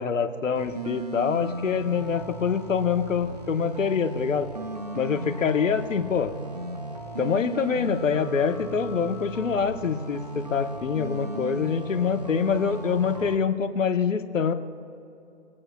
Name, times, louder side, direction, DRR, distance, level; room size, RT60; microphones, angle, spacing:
voice 1, 0.0-4.5 5.0-6.3 7.2-14.5, left 6 dB, 75° left, 7 dB, 1.1 m, -25 dB
sound 1, 0.6-13.4, right 2 dB, 35° right, 0.4 m, -36 dB
25.5 x 8.7 x 2.3 m, 2.7 s
hypercardioid pair, 170°, 39 cm